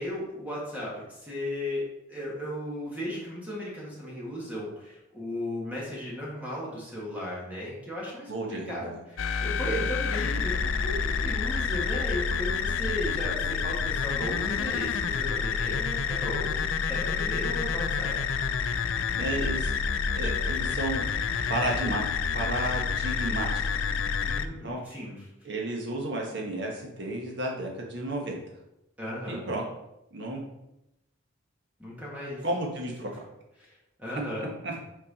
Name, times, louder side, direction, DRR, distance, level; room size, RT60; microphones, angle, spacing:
voice 1, 0.0-18.1 24.2-25.3 29.0-29.4 31.8-32.4 33.6-34.7, left 1 dB, 10° right, -6 dB, 1.5 m, -36 dB
voice 2, 8.3-8.9 9.6-9.8 19.1-19.7 20.1-21.0 21.5-22.0 22.3-23.5 24.6-24.8 25.4-28.4 29.3-29.6 30.1-30.4 32.4-33.2 34.6-34.7, right 1 dB, 60° right, -1 dB, 1.3 m, -32 dB
sound 1, 9.2-24.5, left 6 dB, 75° left, 0.4 m, -28 dB
5.8 x 4.5 x 4.2 m, 0.88 s
head